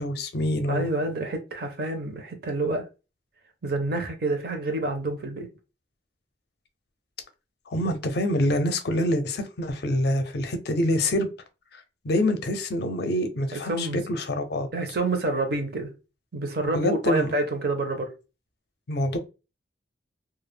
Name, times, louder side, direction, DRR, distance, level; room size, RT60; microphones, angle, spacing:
voice 1, 0.0-0.9 7.7-11.3 11.7-14.7 16.7-17.3 18.9-19.2, left 1 dB, 60° left, 0.5 m, -26 dB
voice 2, 0.7-2.9 3.6-5.5 13.5-14.0 14.7-15.9 16.3-18.1, right 2 dB, 55° right, 0.6 m, -28 dB
2.3 x 2.0 x 3.2 m
head